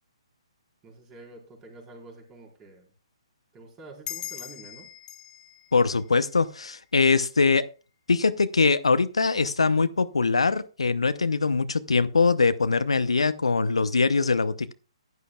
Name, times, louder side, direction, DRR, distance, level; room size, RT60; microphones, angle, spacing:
voice 1, 0.8-2.8 3.5-4.9, right 3 dB, 20° right, 4.4 m, -47 dB
sound 1, 4.1-7.2, left 11 dB, 20° left, 1.2 m, -42 dB
voice 2, 5.7-7.7 8.1-14.7, left 4 dB, 75° left, 0.8 m, -22 dB
15.0 x 11.0 x 2.4 m
figure-of-eight pair, 130°, 3 cm